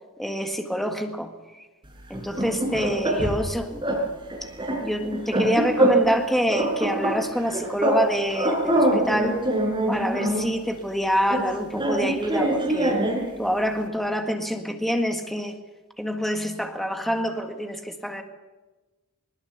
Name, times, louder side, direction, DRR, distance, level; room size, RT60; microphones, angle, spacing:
voice 1, 0.2-1.6 2.1-4.1 4.8-9.4 9.9-13.0 13.4-15.5 16.0-18.2, equal, ahead, 4 dB, 1.7 m, -26 dB
sound 1, 2.1-3.5 3.8-4.0 4.3-6.2 6.5-8.1 8.3-10.5 11.3-13.3, right 1 dB, 20° right, 4.7 m, -24 dB
21.0 x 20.0 x 6.8 m, 1.1 s
head